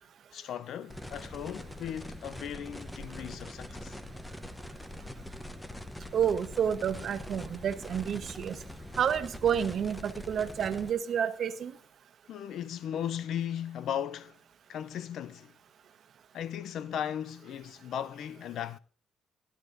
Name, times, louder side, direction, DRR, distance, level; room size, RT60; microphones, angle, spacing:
voice 1, 0.3-4.0 12.3-14.4 14.7-15.5 16.3-18.8, left 9 dB, 75° left, 0.4 m, -37 dB
sound 1, 0.9-10.9, left 1 dB, 10° left, 0.8 m, -43 dB
voice 2, 6.1-8.5 9.0-11.7, right 8 dB, 60° right, 1.0 m, -29 dB
18.5 x 12.5 x 2.6 m
cardioid pair, 90°, 0 cm